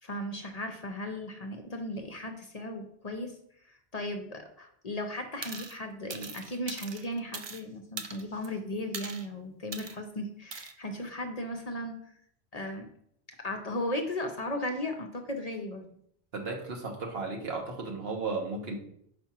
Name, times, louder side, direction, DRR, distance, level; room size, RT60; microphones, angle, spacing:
voice 1, 0.0-3.4 3.6-12.0 12.5-12.9 13.4-15.9, left 1 dB, 45° left, 4 dB, 0.7 m, -36 dB
sound 1, 5.4-5.8 6.1-7.6 8.0-8.5 8.9-9.3 9.7-10.0 10.5-10.7, right 4 dB, 40° right, 0.4 m, -40 dB
voice 2, 16.3-18.8, right 3 dB, 70° right, 1 dB, 1.4 m, -34 dB
5.1 x 4.3 x 5.9 m, 0.69 s
omnidirectional pair, 1.1 m